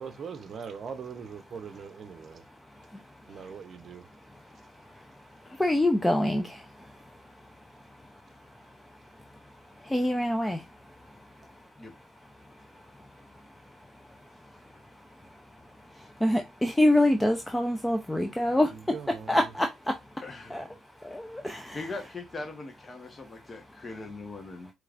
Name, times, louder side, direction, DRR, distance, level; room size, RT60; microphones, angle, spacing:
voice 1, 0.0-2.5 3.3-4.1 18.5-19.5, right 6 dB, 55° right, 0.7 m, -41 dB
voice 2, 5.6-6.4 9.9-10.6 16.2-18.7 19.3-19.7 20.5-20.6 21.1-21.9, left 1 dB, 10° left, 0.5 m, -25 dB
voice 3, 20.2-20.7 21.7-24.7, left 3 dB, 30° left, 1.1 m, -40 dB
4.7 x 3.3 x 2.5 m
cardioid pair, 90°, 0 cm